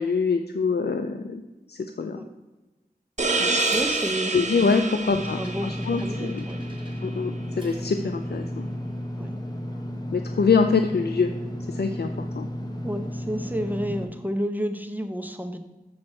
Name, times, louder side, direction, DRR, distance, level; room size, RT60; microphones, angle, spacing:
voice 1, 0.0-1.4 1.7-2.2 3.4-3.6 4.3-6.4 7.0-8.7 10.1-11.3 11.7-12.5, left 5 dB, 85° left, 7 dB, 0.4 m, -25 dB
sound 1, 3.2-6.6, right 3 dB, 45° right, 1.0 m, -27 dB
Dishes pots and pans, 3.3-8.0, right 1 dB, 30° right, 1.6 m, -47 dB
voice 2, 3.7-4.3 4.8-6.6 9.2-9.3 12.8-15.6, equal, 10° right, 6 dB, 0.8 m, -31 dB
Engine / Mechanisms, 5.1-14.0, equal, 25° left, 1.2 m, -33 dB
7.6 x 6.4 x 4.3 m, 1.1 s
wide cardioid pair, 50°, 16 cm